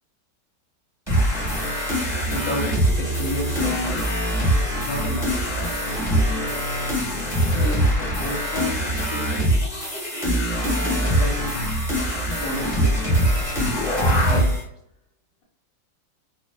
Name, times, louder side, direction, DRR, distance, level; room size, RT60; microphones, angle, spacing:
sound 1, 1.1-14.6, equal, ahead, 0.8 m, -23 dB
voice 1, 2.3-2.7 3.0-4.1 4.7-5.8 7.5-9.3 11.0-11.6 12.4-13.0 13.9-14.6, left 1 dB, 65° left, 0 dB, 1.0 m, -31 dB
2.7 x 2.1 x 2.2 m, 0.76 s
omnidirectional pair, 1.8 m